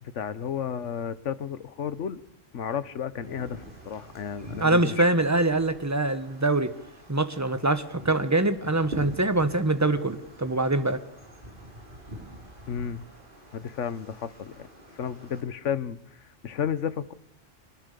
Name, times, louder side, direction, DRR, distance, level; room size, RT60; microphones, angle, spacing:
voice 1, 0.0-2.2 2.5-5.3 12.7-13.1 13.5-14.7 14.9-17.1, left 8 dB, 75° left, 15 dB, 1.4 m, -33 dB
Wind, 3.1-15.4, right 1 dB, 40° right, 5.8 m, -46 dB
voice 2, 4.6-6.7 7.1-11.0, right 2 dB, 15° right, 10 dB, 1.4 m, -24 dB
25.0 x 19.5 x 6.8 m, 0.81 s
omnidirectional pair, 1.3 m